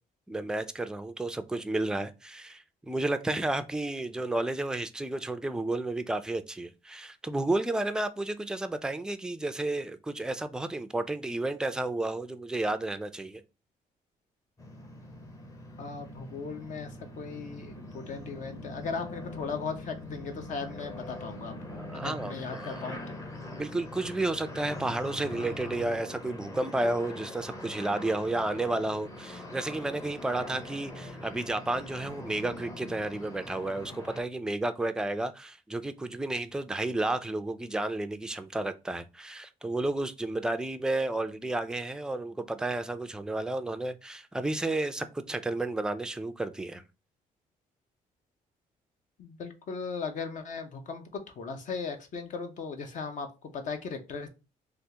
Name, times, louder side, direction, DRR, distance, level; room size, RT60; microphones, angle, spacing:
voice 1, 0.3-13.4 21.7-23.0 23.6-46.8, right 2 dB, 5° right, 0.3 m, -32 dB
sound 1, 14.6-34.2, left 1 dB, 20° left, 0.7 m, -43 dB
voice 2, 15.8-23.2 49.2-54.3, left 5 dB, 60° left, 0.7 m, -38 dB
3.4 x 2.4 x 2.8 m
cardioid pair, 115°, 15 cm